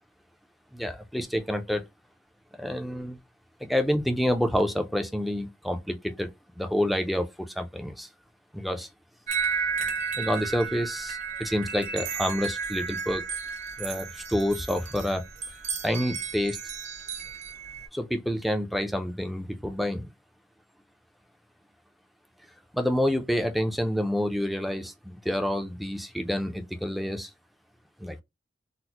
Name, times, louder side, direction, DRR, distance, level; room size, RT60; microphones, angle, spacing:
voice 1, 0.7-1.8 2.6-3.2 3.6-6.3 6.6-7.3 7.5-8.1 8.5-8.9 10.1-13.2 13.8-15.2 15.8-16.6 17.9-20.1 22.7-27.3 28.0-28.2, equal, ahead, 0.4 m, -28 dB
sound 1, 9.3-17.9, right 6 dB, 40° right, 0.9 m, -33 dB
4.0 x 2.0 x 2.8 m
head